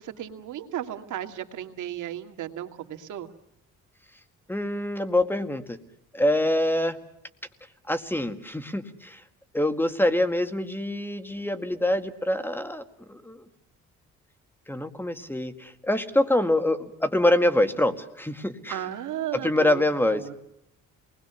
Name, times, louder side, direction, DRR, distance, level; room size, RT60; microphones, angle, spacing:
voice 1, 0.0-3.3 18.7-20.3, right 11 dB, 80° right, 6 dB, 2.1 m, -35 dB
voice 2, 4.5-5.8 6.1-7.0 7.9-9.2 9.5-12.8 13.1-13.4 14.7-18.8 19.3-20.3, left 1 dB, 5° left, 9 dB, 2.0 m, -25 dB
28.0 x 20.5 x 6.9 m, 0.80 s
cardioid pair, 90°, 30 cm